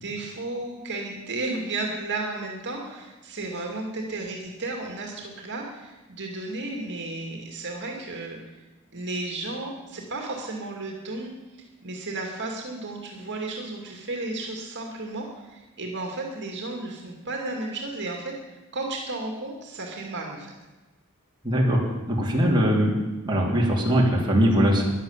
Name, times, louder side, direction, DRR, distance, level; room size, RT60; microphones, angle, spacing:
voice 1, 0.0-8.4 8.9-11.3 11.8-20.5, right 2 dB, 55° right, 1 dB, 2.5 m, -33 dB
voice 2, 21.4-21.8 22.1-22.9 23.2-24.9, equal, 20° right, -3 dB, 3.1 m, -21 dB
15.0 x 11.0 x 7.4 m, 1.1 s
head